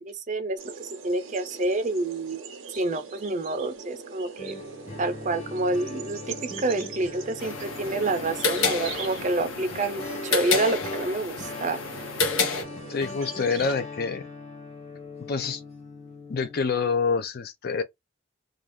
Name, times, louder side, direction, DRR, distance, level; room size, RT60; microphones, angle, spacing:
voice 1, 0.0-2.4 2.8-4.6 5.0-11.8, right 2 dB, 35° right, 0.5 m, -28 dB
sound 1, 0.6-13.8, right 5 dB, 80° right, 0.7 m, -42 dB
sound 2, 4.4-16.6, left 2 dB, 30° left, 0.8 m, -40 dB
sound 3, 7.4-12.6, left 4 dB, 85° left, 0.7 m, -29 dB
voice 2, 12.9-14.3 15.3-15.6 16.3-17.8, left 5 dB, 50° left, 0.4 m, -27 dB
2.6 x 2.3 x 3.3 m
head